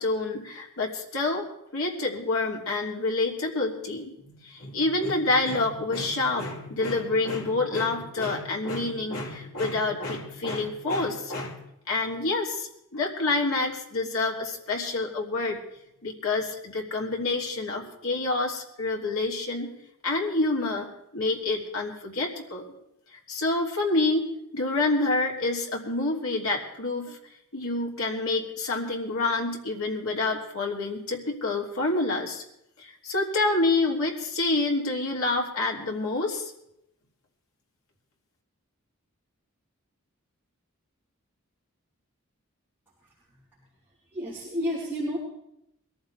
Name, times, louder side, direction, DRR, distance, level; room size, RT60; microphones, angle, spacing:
voice 1, 0.0-1.4 1.7-11.6 11.9-15.6 16.0-19.7 20.0-22.7 23.3-24.2 24.5-27.2 27.5-32.4 32.8-36.5, left 2 dB, 80° left, -1 dB, 3.0 m, -27 dB
voice 2, 44.1-45.2, equal, 10° right, -8 dB, 3.9 m, -30 dB
22.5 x 14.5 x 3.4 m, 0.81 s
head